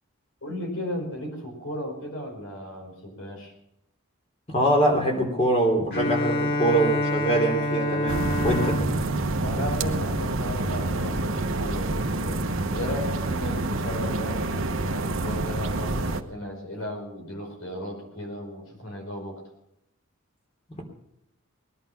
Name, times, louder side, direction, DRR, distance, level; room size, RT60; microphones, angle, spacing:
voice 1, 0.4-3.5 9.4-12.4 12.7-19.4, left 1 dB, 75° left, 3 dB, 5.2 m, -35 dB
voice 2, 4.5-8.8, right 1 dB, 30° left, 1 dB, 3.3 m, -23 dB
Bowed string instrument, 5.9-10.6, left 1 dB, 45° left, 2.0 m, -28 dB
sound 1, 8.1-16.2, right 2 dB, 70° right, 1.1 m, -28 dB
20.0 x 11.0 x 5.7 m, 0.83 s
head